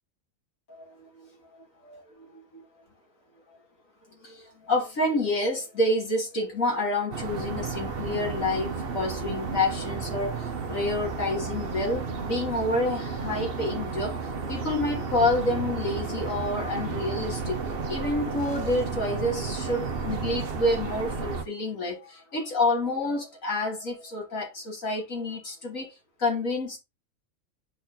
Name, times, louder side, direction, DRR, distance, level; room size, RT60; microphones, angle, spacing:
voice 1, 0.7-1.4 1.8-2.6 4.2-14.1 14.5-25.9 26.2-26.8, left 2 dB, 80° left, 3.1 m, -28 dB
sound 1, 7.1-21.4, right 4 dB, 50° right, 1.1 m, -32 dB
10.0 x 4.2 x 2.8 m
omnidirectional pair, 1.4 m